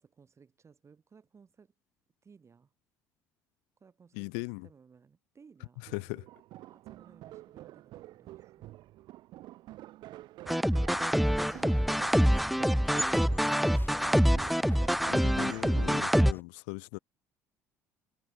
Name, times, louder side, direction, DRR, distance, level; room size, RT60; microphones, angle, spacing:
voice 1, 0.0-1.7 2.2-2.7 3.8-4.3 4.6-5.8 6.7-8.8 11.4-13.9, right 5 dB, 35° right, 5.4 m, -59 dB
voice 2, 4.1-4.7 5.8-6.3 15.1-17.0, left 40 dB or more, 70° left, 0.4 m, -39 dB
sound 1, 5.9-15.9, right 16 dB, 60° right, 1.7 m, -49 dB
sound 2, 10.5-16.3, equal, ahead, 0.3 m, -25 dB
sound 3, 11.3-16.4, left 4 dB, 25° left, 1.2 m, -48 dB
hypercardioid pair, 55°, 8 cm